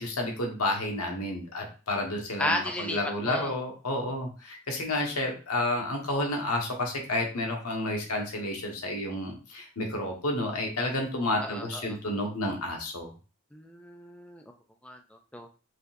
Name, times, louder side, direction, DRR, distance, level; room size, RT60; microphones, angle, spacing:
voice 1, 0.0-13.1, left 1 dB, 85° left, 1 dB, 1.3 m, -30 dB
voice 2, 2.4-3.0 3.2-3.5 11.4-12.0 13.5-14.4 14.8-15.5, left 1 dB, 5° left, 3 dB, 0.4 m, -34 dB
4.9 x 3.9 x 2.6 m, 0.35 s
head